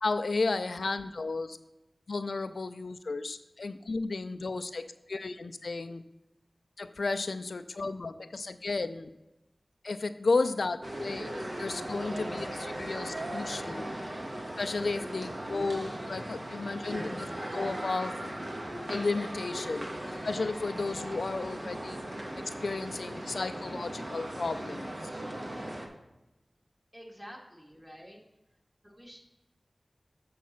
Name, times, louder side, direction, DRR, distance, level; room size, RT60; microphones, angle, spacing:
voice 1, 0.0-1.6 2.1-6.0 6.8-9.1 9.8-13.9 14.6-18.3 18.9-19.9 20.2-22.0 22.4-24.9, left 3 dB, 85° left, 10 dB, 0.4 m, -33 dB
sound 1, 10.8-25.9, right 1 dB, 50° right, 1.4 m, -38 dB
voice 2, 26.9-28.2 28.8-29.2, equal, 15° right, -1 dB, 2.0 m, -48 dB
8.3 x 4.2 x 5.9 m, 0.98 s
wide cardioid pair, 55°, 0 cm